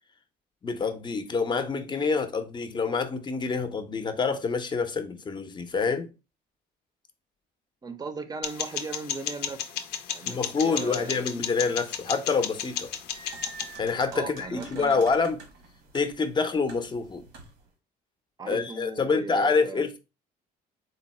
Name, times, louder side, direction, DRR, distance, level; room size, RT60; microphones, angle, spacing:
voice 1, 0.6-6.1 10.3-12.9 13.8-15.4 15.9-17.2 18.5-20.0, left 4 dB, 25° left, 0.6 m, -27 dB
voice 2, 7.8-9.8 10.1-11.3 14.1-15.1 18.4-19.9, right 4 dB, 25° right, 0.5 m, -38 dB
sound 1, 8.4-13.7, left 9 dB, 85° left, 0.5 m, -34 dB
sound 2, 12.7-17.7, right 3 dB, 90° right, 1.1 m, -47 dB
3.8 x 2.0 x 4.0 m
cardioid pair, 110°, 17 cm